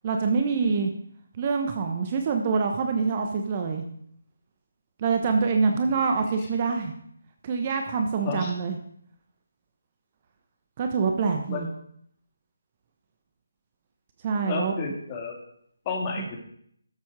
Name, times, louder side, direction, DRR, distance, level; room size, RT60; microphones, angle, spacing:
voice 1, 0.0-0.9 1.3-3.8 5.0-6.9 7.4-8.8 10.8-11.7 14.2-14.7 16.2-16.3, right 5 dB, 30° right, 4 dB, 1.1 m, -25 dB
voice 2, 14.5-15.4 15.8-16.4, left 4 dB, 20° left, 0 dB, 2.7 m, -31 dB
13.0 x 7.5 x 4.9 m, 0.68 s
figure-of-eight pair, 150°, 0 cm